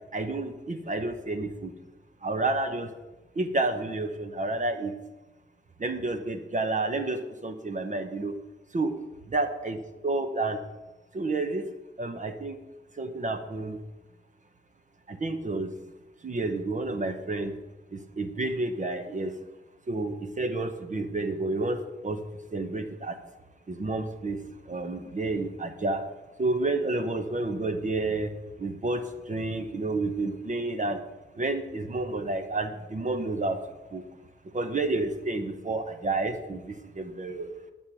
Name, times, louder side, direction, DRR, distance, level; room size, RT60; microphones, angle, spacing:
voice 1, 0.1-1.7 2.2-2.9 3.4-4.9 5.8-8.3 8.7-8.9 9.3-9.8 10.0-10.6 11.1-11.6 12.0-12.6 13.0-13.8 15.1-15.7 16.2-17.5 17.9-19.3 19.9-22.2 22.5-23.1 23.7-24.4 24.7-26.0 26.4-28.3 28.6-31.0 31.4-33.6 33.9-34.0 34.5-37.5, right 2 dB, 40° right, 7 dB, 0.9 m, -30 dB
11.5 x 7.3 x 6.1 m, 1.1 s
wide cardioid pair, 120°, 19 cm